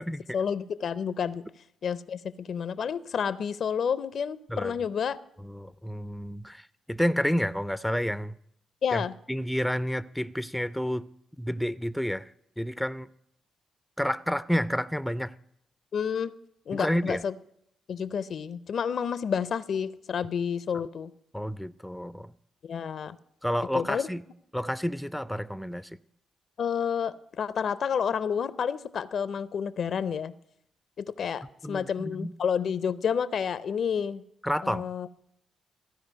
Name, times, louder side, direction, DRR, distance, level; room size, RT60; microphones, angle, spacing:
voice 1, 0.3-1.4 1.8-5.2 8.8-9.1 15.9-16.3 16.7-17.3 17.9-21.1 22.6-23.2 23.7-24.1 26.6-30.3 31.0-34.2 34.6-35.1, left 7 dB, 65° left, 0.5 m, -30 dB
voice 2, 5.4-8.4 8.9-11.1 11.4-13.1 14.0-15.4 16.7-17.2 21.3-22.3 23.4-24.2 24.5-25.9 31.6-32.3 34.4-34.9, equal, 5° left, 0.4 m, -30 dB
14.5 x 4.9 x 8.1 m
supercardioid pair, 50°, 0 cm